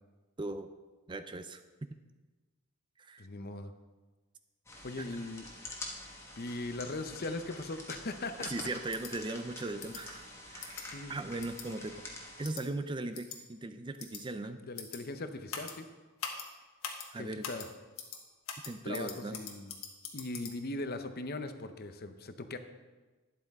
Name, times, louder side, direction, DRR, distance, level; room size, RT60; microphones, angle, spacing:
voice 1, 0.4-0.7 1.1-1.6 3.0-3.2 8.5-12.0 12.4-14.6 17.1-17.4 18.6-19.4, right 2 dB, 20° right, 9 dB, 0.4 m, -38 dB
voice 2, 3.2-3.7 4.8-5.5 6.4-8.7 10.7-11.2 14.6-15.9 17.2-17.7 18.8-19.7 20.1-22.6, left 2 dB, 45° left, 9 dB, 0.7 m, -39 dB
sound 1, 4.7-12.5, left 1 dB, 15° left, 1.4 m, -47 dB
sound 2, 8.9-9.1 9.8-10.0 10.6-10.8 11.4-11.7 12.4-12.6 13.1-13.4 14.0-14.2 14.8-15.0 15.5-15.7 16.2-16.5 16.8-17.1 17.4-17.7 18.0-18.2 18.5-20.5, left 7 dB, 70° left, 1.4 m, -42 dB
12.0 x 10.0 x 3.6 m, 1.3 s
head